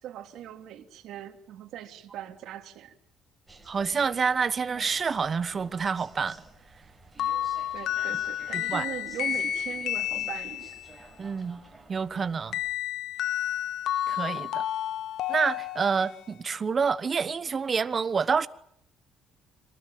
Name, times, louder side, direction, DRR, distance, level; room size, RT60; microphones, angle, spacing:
voice 1, 0.0-2.9 7.7-10.8, right 11 dB, 75° right, 3.0 m, -40 dB
sound 1, 3.5-12.8, right 3 dB, 15° right, 5.5 m, -52 dB
voice 2, 3.7-6.4 8.5-8.9 11.2-11.6 11.9-12.6 14.1-14.6 15.3-18.5, right 5 dB, 30° right, 1.2 m, -28 dB
sound 2, 7.2-10.9 12.5-16.3, left 11 dB, 70° left, 1.3 m, -31 dB
27.0 x 19.5 x 9.4 m
cardioid pair, 140°, 0 cm